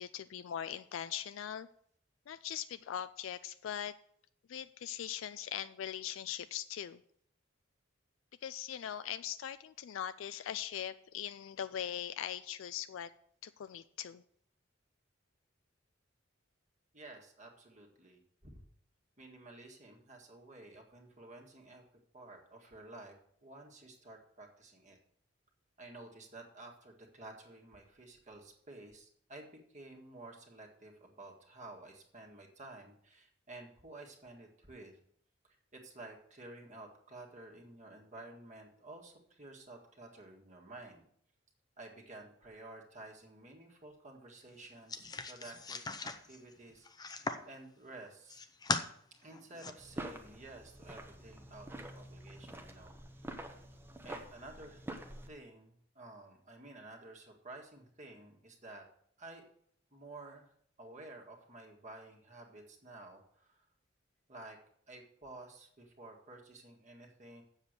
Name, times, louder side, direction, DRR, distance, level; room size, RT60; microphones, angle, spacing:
voice 1, 0.0-1.7 2.3-3.9 4.5-7.0 8.4-13.1 13.4-14.2, left 9 dB, 80° left, 13 dB, 0.4 m, -41 dB
voice 2, 16.9-18.6 19.2-21.8 22.1-23.2 23.4-25.0 25.8-34.9 35.7-41.1 41.8-48.4 49.2-52.9 54.0-54.8 55.3-58.9 59.2-59.4 59.9-60.5 60.8-63.5 64.3-64.6 64.9-67.4, right 2 dB, 40° right, 1 dB, 1.8 m, -52 dB
sound 1, 44.9-47.5 48.0-48.9 49.3-49.7, left 3 dB, 20° left, 0.6 m, -39 dB
sound 2, 49.8-55.3, right 1 dB, 10° right, 0.9 m, -47 dB
7.7 x 7.3 x 6.6 m, 0.65 s
head